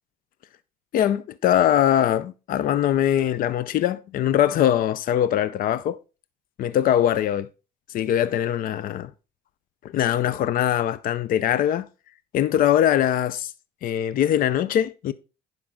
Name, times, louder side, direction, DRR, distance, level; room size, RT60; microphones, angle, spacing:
voice 1, 0.9-6.0 6.6-7.5 7.9-9.1 9.8-11.9 12.3-13.5 13.8-15.1, left 11 dB, 55° left, 0.5 m, -22 dB
10.0 x 5.4 x 3.7 m
cardioid pair, 110°, 17 cm